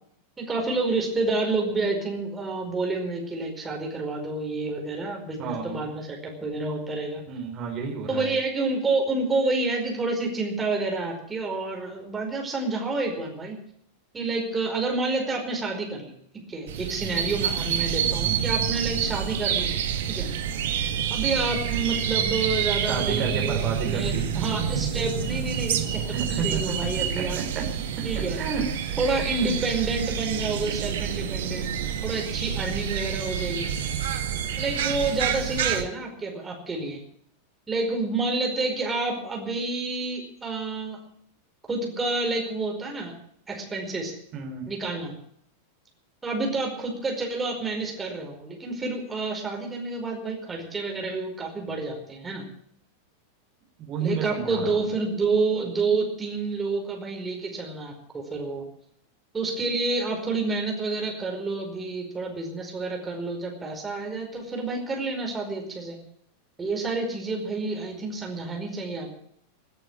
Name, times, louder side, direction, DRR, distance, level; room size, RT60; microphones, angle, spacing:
voice 1, 0.4-7.2 8.1-13.6 14.1-16.1 16.5-19.8 20.1-20.3 21.1-27.4 28.0-28.4 29.0-31.7 32.0-33.8 34.6-37.0 37.7-41.0 41.7-43.1 43.5-44.1 44.7-45.1 46.2-52.5 54.0-58.7 59.3-66.0 66.6-69.2, right 3 dB, 15° right, 1 dB, 4.9 m, -29 dB
voice 2, 5.4-5.9 7.3-8.3 22.9-24.3 26.1-26.6 27.1-27.2 27.5-27.6 28.4-28.7 29.4-29.5 44.3-44.7 53.8-54.9, right 5 dB, 35° right, 0 dB, 4.2 m, -31 dB
sound 1, 16.7-35.8, right 8 dB, 60° right, 1.9 m, -28 dB
17.5 x 9.1 x 8.9 m, 0.67 s
figure-of-eight pair, 90°, 0 cm